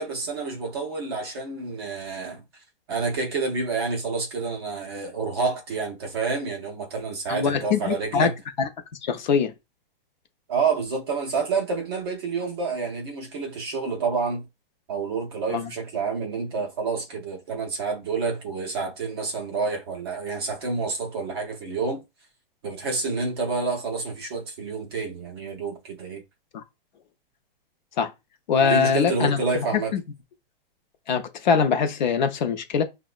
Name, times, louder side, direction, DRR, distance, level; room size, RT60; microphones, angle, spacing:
voice 1, 0.0-2.4 2.9-8.3 10.5-14.5 14.9-22.0 22.6-26.2 28.6-29.9, right 4 dB, 25° right, 0.5 m, -28 dB
voice 2, 7.3-8.3 8.6-8.7 9.0-9.5 15.5-15.7 26.5-26.6 28.0-28.1 28.5-29.7 29.9-30.0 31.1-32.8, left 6 dB, 50° left, 0.5 m, -23 dB
5.1 x 2.1 x 2.3 m
hypercardioid pair, 170°, 29 cm